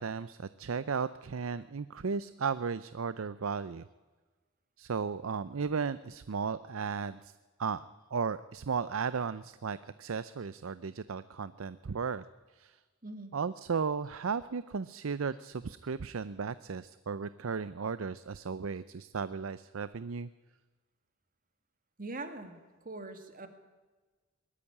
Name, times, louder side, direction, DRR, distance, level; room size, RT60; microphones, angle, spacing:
voice 1, 0.0-3.9 4.8-7.3 7.6-7.8 8.1-12.2 12.6-12.8 13.3-20.3, right 5 dB, 80° right, 15 dB, 0.6 m, -35 dB
voice 2, 13.0-13.3 22.0-23.5, right 2 dB, 45° right, 8 dB, 2.1 m, -42 dB
20.0 x 13.5 x 9.8 m, 1.3 s
head